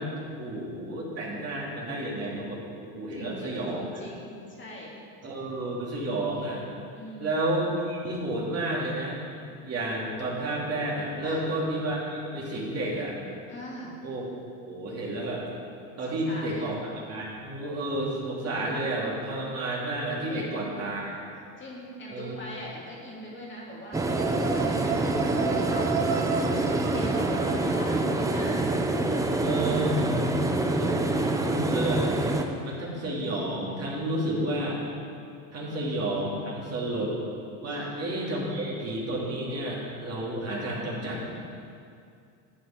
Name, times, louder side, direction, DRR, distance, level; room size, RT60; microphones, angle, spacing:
voice 1, 0.0-3.9 5.2-6.6 7.2-9.2 9.6-13.2 14.0-14.2 14.7-15.4 16.0-16.8 17.1-21.3 22.1-22.4 29.4-30.0 30.8-31.0 31.4-32.0 32.6-34.8 35.5-37.1 37.6-41.2, right 1 dB, 35° right, -4 dB, 2.8 m, -31 dB
voice 2, 3.1-5.0 6.9-7.4 11.2-11.4 13.5-13.9 16.1-16.7 20.3-20.6 21.6-26.2 26.4-28.7 30.8-31.5 35.6-35.8 37.7-37.9, left 1 dB, 30° left, -4 dB, 2.3 m, -42 dB
sound 1, 23.9-32.4, right 2 dB, 10° right, 0.6 m, -26 dB
sound 2, 23.9-28.9, right 7 dB, 60° right, 1.3 m, -33 dB
11.5 x 7.9 x 4.5 m, 2.4 s
supercardioid pair, 110°, 41 cm